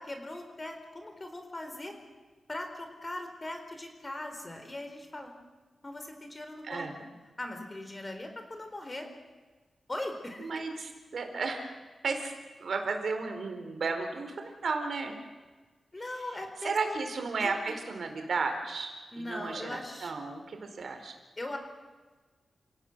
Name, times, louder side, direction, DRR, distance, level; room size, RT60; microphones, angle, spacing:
voice 1, 0.0-1.9 2.5-5.3 5.8-6.9 7.4-9.1 9.9-10.5 15.9-17.0 17.4-17.8 19.1-20.1 21.4-21.6, left 1 dB, 25° left, 5 dB, 4.3 m, -40 dB
voice 2, 6.6-7.0 10.4-11.7 12.0-12.3 12.6-15.2 16.6-21.1, right 4 dB, 65° right, 5 dB, 4.4 m, -33 dB
30.0 x 18.0 x 8.0 m, 1.3 s
wide cardioid pair, 130°, 0 cm